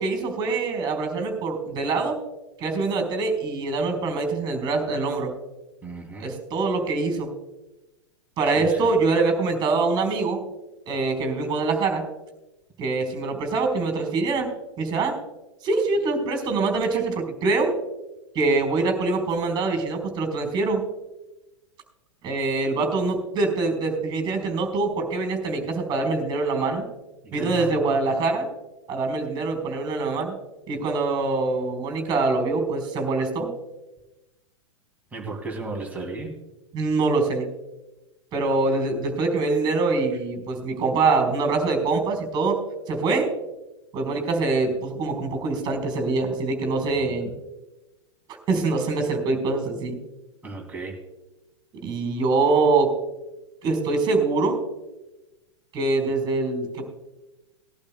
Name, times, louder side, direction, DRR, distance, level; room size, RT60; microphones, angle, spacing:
voice 1, 0.0-2.2 2.6-5.3 6.2-7.3 8.4-10.4 10.9-12.0 12.8-14.5 14.8-15.2 15.6-17.7 18.3-20.8 22.2-26.9 27.3-28.5 28.9-30.3 30.7-33.5 36.7-37.5 38.3-42.6 42.9-43.3 43.9-47.3 48.5-50.0 51.8-52.9 53.6-54.6 55.7-56.9, right 3 dB, 25° right, 5 dB, 4.2 m, -24 dB
voice 2, 5.8-6.3 8.5-9.0 27.2-27.9 35.1-36.4 47.0-47.1 50.4-51.0, right 3 dB, 10° right, 0 dB, 2.8 m, -35 dB
20.0 x 12.0 x 2.2 m, 1.0 s
figure-of-eight pair, 100°, 16 cm